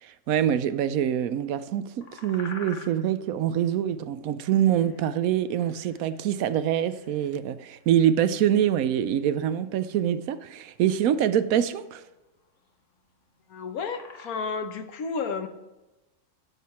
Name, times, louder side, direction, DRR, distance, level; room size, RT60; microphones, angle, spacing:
voice 1, 0.0-12.0, right 10 dB, 75° right, 1.0 m, -25 dB
sound 1, 1.8-14.6, left 4 dB, 60° left, 1.4 m, -49 dB
voice 2, 13.5-15.5, left 5 dB, 85° left, 1.4 m, -32 dB
11.5 x 7.6 x 4.3 m
omnidirectional pair, 1.5 m